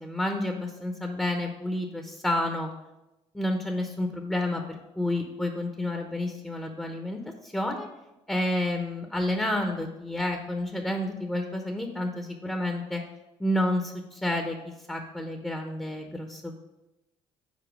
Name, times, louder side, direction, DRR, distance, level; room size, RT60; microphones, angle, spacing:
voice 1, 0.0-2.7 3.3-7.9 8.3-13.0 13.4-16.6, left 1 dB, 5° left, 3 dB, 0.8 m, -30 dB
5.1 x 4.3 x 6.1 m, 0.97 s
supercardioid pair, 70°, 13 cm